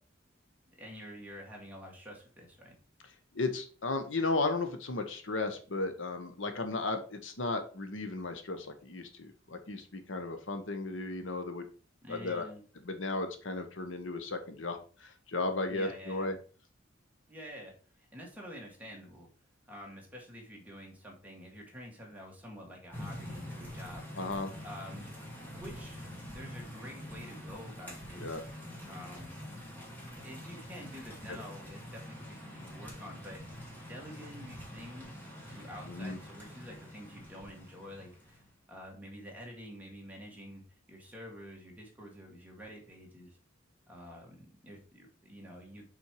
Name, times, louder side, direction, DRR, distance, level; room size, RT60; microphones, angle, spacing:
voice 1, 0.7-2.8 12.0-12.6 15.7-16.3 17.3-19.3 19.7-25.1 25.4-28.4 28.9-29.4 30.2-38.4 38.7-40.6 40.9-43.4 43.9-45.9, equal, 10° right, -1 dB, 2.1 m, -48 dB
voice 2, 3.3-11.7 12.1-12.5 12.8-16.4 24.2-24.5 28.2-28.4 31.3-31.4 35.9-36.2, left 3 dB, 70° left, 7 dB, 1.0 m, -35 dB
sound 1, 22.9-38.5, equal, 10° left, 2.3 m, -46 dB
5.7 x 4.5 x 4.7 m, 0.40 s
head